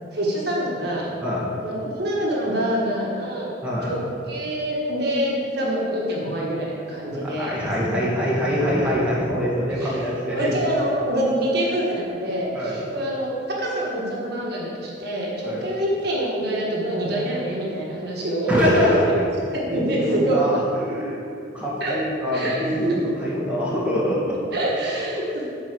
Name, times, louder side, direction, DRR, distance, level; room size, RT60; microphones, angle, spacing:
voice 1, 0.1-1.1 1.4-3.5 3.8-4.0 4.3-7.6 9.8-10.0 10.3-18.5 19.7-20.4 21.8-22.0 22.3-22.6 24.5-25.2, right 1 dB, 55° right, -4 dB, 1.7 m, -25 dB
voice 2, 3.6-3.9 7.2-10.5 12.5-12.8 15.4-15.6 18.5-19.2 19.7-21.2 21.5-24.4, equal, 5° right, -7 dB, 1.6 m, -23 dB
10.0 x 4.6 x 6.2 m, 2.5 s
head